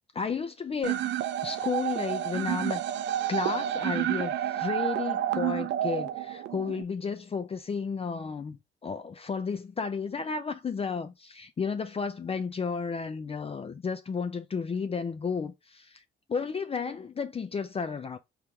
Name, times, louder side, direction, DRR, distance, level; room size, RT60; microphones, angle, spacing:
voice 1, 0.1-1.0 1.4-2.8 3.3-16.0 16.3-18.2, left 5 dB, 30° left, 0.4 m, -33 dB
sound 1, 0.8-6.8, right 11 dB, 65° right, 0.4 m, -30 dB
3.6 x 3.0 x 3.3 m
cardioid pair, 90°, 20 cm